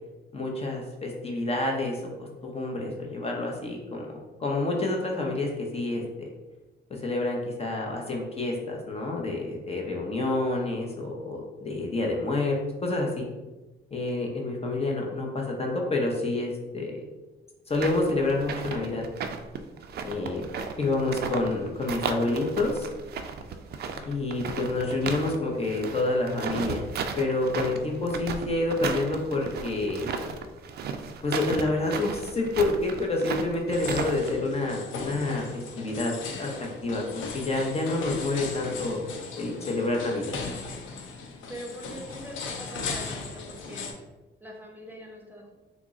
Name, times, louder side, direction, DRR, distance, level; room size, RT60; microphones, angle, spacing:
voice 1, 0.3-4.1 4.4-6.3 7.0-13.2 13.9-17.0 17.7-19.0 20.0-20.4 20.8-22.9 24.1-26.8 27.2-30.1 31.2-36.5 36.8-39.1 39.4-40.4, left 2 dB, 30° left, 0 dB, 0.7 m, -28 dB
sound 1, 17.7-21.5 21.8-25.4 25.6-34.3, right 6 dB, 55° right, 0.4 m, -34 dB
sound 2, 33.7-43.9, left 4 dB, 80° left, 0.5 m, -38 dB
voice 2, 41.5-43.9 44.4-45.5, equal, 10° right, -1 dB, 0.6 m, -42 dB
3.6 x 2.0 x 3.6 m, 1.1 s
cardioid pair, 90°, 20 cm